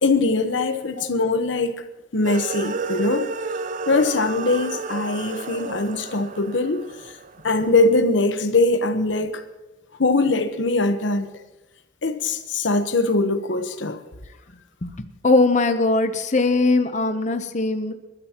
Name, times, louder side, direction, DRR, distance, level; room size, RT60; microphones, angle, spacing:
voice 1, 0.0-1.7 2.1-3.2 3.9-6.8 7.4-9.4 10.0-11.3 12.0-14.0, left 3 dB, 75° left, 1.1 m, -21 dB
sound 1, 2.2-7.7, right 4 dB, 40° right, 0.4 m, -31 dB
voice 2, 15.2-17.9, left 3 dB, 40° left, 0.8 m, -20 dB
27.5 x 12.5 x 3.0 m
head